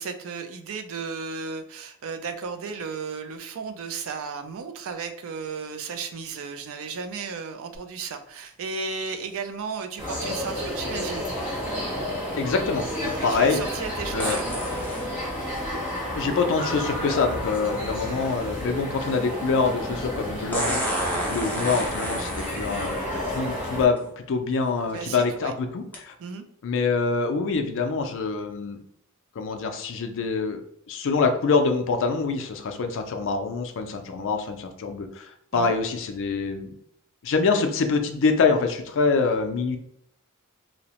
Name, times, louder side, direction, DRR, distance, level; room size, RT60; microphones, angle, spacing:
voice 1, 0.0-11.3 13.3-14.4 24.9-25.5 26.2-26.4 35.5-35.7, right 5 dB, 65° right, 7 dB, 0.4 m, -34 dB
sound 1, 7.7-7.8 14.2-15.1 17.1-17.2 20.5-23.0 24.0-24.1 24.7-25.0 25.9-26.0, equal, 10° left, 0.6 m, -30 dB
sound 2, 10.0-23.9, equal, 10° right, 0.9 m, -31 dB
voice 2, 12.4-13.6 14.1-14.4 16.1-26.1 26.6-28.8 29.4-30.6 30.9-36.8 37.2-39.8, left 4 dB, 60° left, 6 dB, 0.4 m, -25 dB
2.8 x 2.0 x 2.8 m, 0.70 s
head